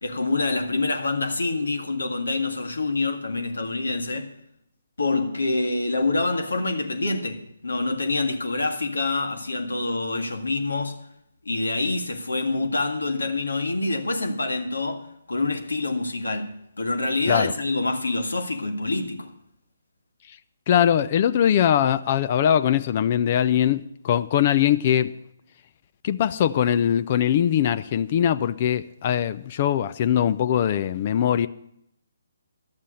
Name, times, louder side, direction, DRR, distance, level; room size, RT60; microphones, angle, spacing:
voice 1, 0.0-4.3 5.0-11.0 11.4-19.3, left 2 dB, 75° left, 1.8 m, -26 dB
voice 2, 20.7-25.1 26.0-31.5, left 10 dB, 40° left, 0.5 m, -21 dB
12.5 x 7.5 x 8.4 m
figure-of-eight pair, 140°, 0 cm